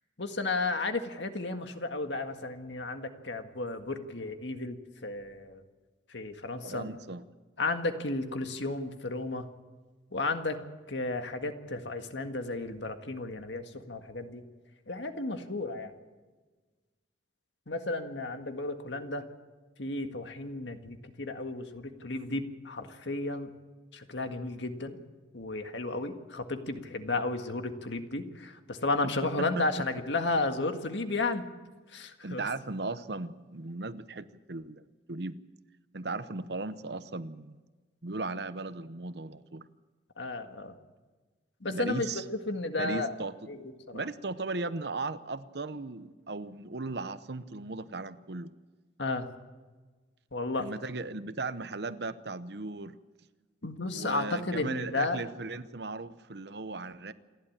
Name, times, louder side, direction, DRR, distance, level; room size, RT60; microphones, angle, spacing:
voice 1, 0.2-4.8 5.0-5.6 6.1-6.8 7.6-9.4 10.1-10.6 10.9-14.4 14.9-15.9 17.7-19.2 19.8-23.5 23.9-25.0 25.3-31.4 31.9-32.4 40.2-40.8 41.6-43.1 43.5-44.0 49.0-49.3 50.3-50.7 53.6-55.2, left 2 dB, 75° left, 6 dB, 1.8 m, -33 dB
voice 2, 6.6-7.2 29.4-29.8 32.2-35.4 35.9-37.6 38.0-39.6 41.7-42.2 42.8-43.3 43.9-48.5 50.6-53.0 53.9-57.1, right 3 dB, 60° right, 13 dB, 0.9 m, -37 dB
28.0 x 11.5 x 8.7 m, 1.3 s
head